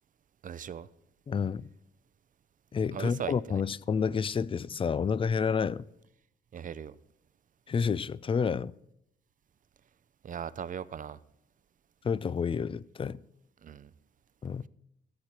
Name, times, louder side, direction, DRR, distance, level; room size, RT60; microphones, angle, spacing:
voice 1, 0.4-0.9 2.9-3.6 6.5-7.0 10.2-11.2 13.6-13.9, right 8 dB, 40° right, 0.6 m, -38 dB
voice 2, 1.3-1.7 2.7-5.8 7.7-8.7 12.0-13.2 14.4-14.7, left 6 dB, 25° left, 0.4 m, -29 dB
15.0 x 8.4 x 4.4 m
cardioid pair, 90°, 20 cm